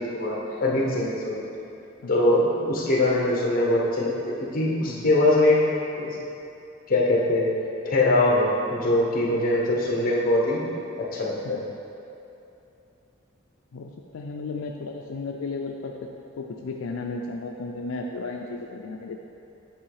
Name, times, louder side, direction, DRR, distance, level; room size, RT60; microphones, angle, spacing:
voice 1, 0.0-1.4 2.1-6.2 6.9-7.5 7.8-10.6 11.0-11.7, left 1 dB, 45° left, -3 dB, 1.0 m, -22 dB
voice 2, 2.0-2.4 4.8-5.1 11.5-11.6 13.7-15.9 16.4-19.2, left 3 dB, 80° left, 1 dB, 0.4 m, -34 dB
8.3 x 3.1 x 4.8 m, 2.8 s
head